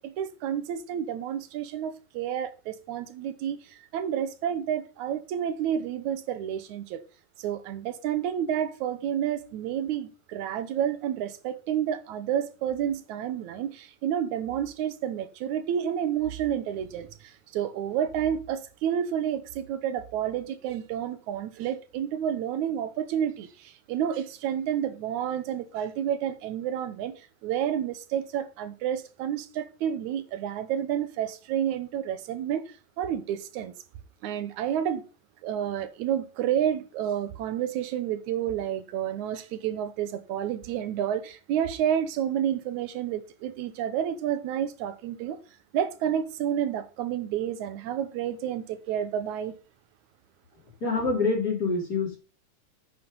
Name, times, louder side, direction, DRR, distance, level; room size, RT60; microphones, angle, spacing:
voice 1, 0.0-7.0 7.4-33.7 34.2-35.0 35.4-45.4 45.7-49.6, right 9 dB, 80° right, 2.4 m, -30 dB
voice 2, 50.8-52.2, left 4 dB, 30° left, 3.8 m, -26 dB
9.0 x 7.4 x 5.3 m
omnidirectional pair, 3.3 m